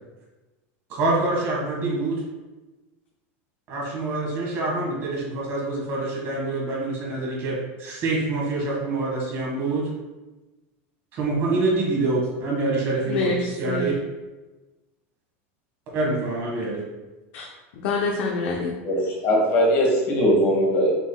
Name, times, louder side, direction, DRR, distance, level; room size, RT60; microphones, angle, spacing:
voice 1, 0.9-2.2 3.7-9.9 11.1-13.3 13.6-13.9 15.9-16.8, right 2 dB, 35° right, 1.3 m, -26 dB
voice 2, 13.1-14.0 17.3-17.5 17.7-18.7, left 3 dB, 50° left, 0.6 m, -26 dB
voice 3, 18.8-20.9, equal, 30° left, 1.2 m, -20 dB
6.0 x 3.7 x 2.2 m
supercardioid pair, 180°, 7 cm